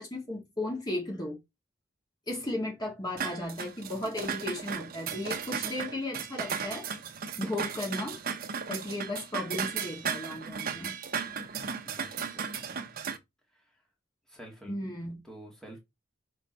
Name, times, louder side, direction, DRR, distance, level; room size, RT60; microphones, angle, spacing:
voice 1, 0.0-1.4 2.3-6.9 7.4-8.2 8.7-11.0 11.5-11.7 14.7-15.2, left 1 dB, 20° left, 2.1 m, -35 dB
sound 1, 3.2-13.2, right 6 dB, 50° right, 0.9 m, -36 dB
voice 2, 11.5-12.7 13.5-13.6 14.3-14.9 15.2-15.8, right 1 dB, 5° left, 2.3 m, -49 dB
6.0 x 4.4 x 4.0 m
head